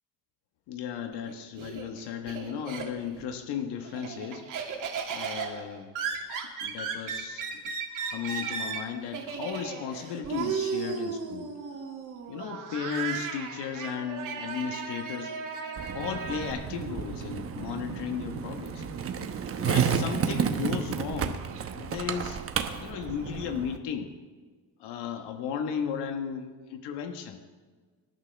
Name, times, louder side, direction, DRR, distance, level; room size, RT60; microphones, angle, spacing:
voice 1, 0.7-4.7 5.1-5.9 6.6-7.6 8.1-11.5 12.3-15.4 15.9-18.8 19.6-21.4 21.7-22.4 22.7-24.1 24.8-27.4, left 8 dB, 80° left, 6 dB, 1.4 m, -35 dB
Laughter, 1.1-3.2 3.6-16.5, right 6 dB, 50° right, 2.6 m, -35 dB
Skateboard, 15.8-23.8, right 7 dB, 35° right, 1.0 m, -31 dB
24.5 x 12.0 x 3.4 m, 1.4 s
cardioid pair, 160°, 40 cm